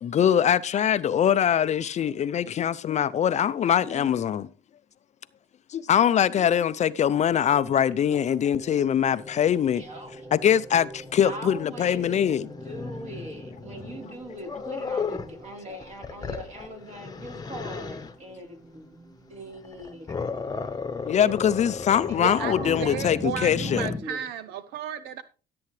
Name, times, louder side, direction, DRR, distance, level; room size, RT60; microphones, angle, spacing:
voice 1, 0.0-4.5 5.7-9.8 10.3-12.5 15.7-15.8 21.0-23.9, left 9 dB, 45° left, 0.5 m, -23 dB
sound 1, 7.2-24.3, right 2 dB, 25° right, 2.5 m, -49 dB
Growling, 9.2-15.4 15.8-18.1 19.6-24.0, left 4 dB, 25° left, 1.0 m, -35 dB
voice 2, 9.7-10.3 11.2-20.3 21.2-21.4 21.9-22.7 23.7-24.3, equal, 45° right, 4.1 m, -41 dB
voice 3, 22.2-25.2, right 9 dB, 85° right, 0.6 m, -33 dB
14.0 x 7.8 x 3.2 m
cardioid pair, 110°, 17 cm